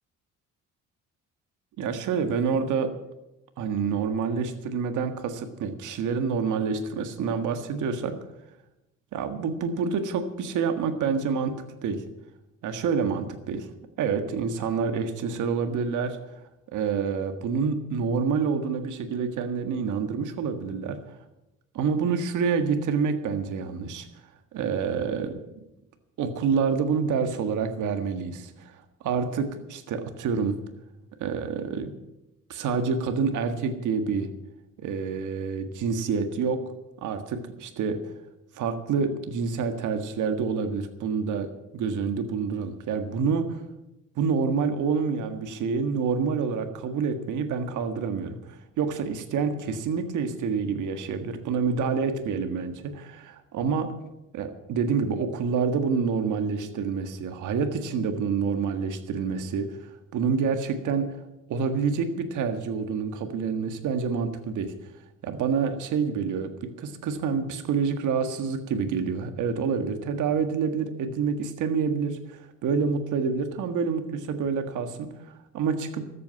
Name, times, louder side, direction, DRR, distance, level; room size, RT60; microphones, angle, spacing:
voice 1, 1.8-2.9 3.6-8.2 9.1-12.0 12.6-13.7 14.0-16.2 16.7-21.0 21.7-24.1 24.5-25.4 26.2-30.5 31.2-31.9 32.5-34.3 34.8-36.6 37.0-38.0 38.5-43.6 44.1-53.9 54.3-61.2 61.5-64.7 65.2-76.0, right 5 dB, 80° right, 7 dB, 1.7 m, -27 dB
13.5 x 8.5 x 9.6 m, 0.93 s
cardioid pair, 90°, 30 cm